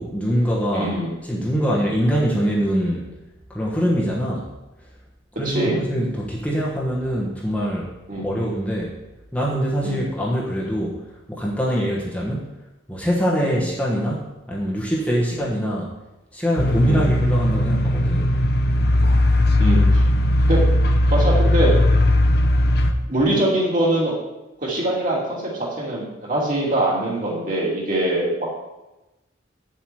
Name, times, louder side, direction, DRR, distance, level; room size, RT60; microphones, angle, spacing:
voice 1, 0.0-0.9 1.2-3.1 3.5-4.5 5.4-7.9 8.2-8.9 9.3-11.0 11.3-12.5 12.9-15.9 16.3-18.3, equal, 5° left, -5 dB, 1.3 m, -23 dB
voice 2, 0.7-1.1 5.4-5.8 8.1-8.3 9.8-10.0 13.4-13.6 15.2-15.4 16.9-17.1 19.6-20.0 20.4-20.6 21.1-21.7 23.1-24.1 24.6-28.6, right 1 dB, 40° right, -5 dB, 2.9 m, -23 dB
sound 1, 16.6-22.9, left 1 dB, 50° left, 0.8 m, -18 dB
9.4 x 7.4 x 4.8 m, 1.0 s
head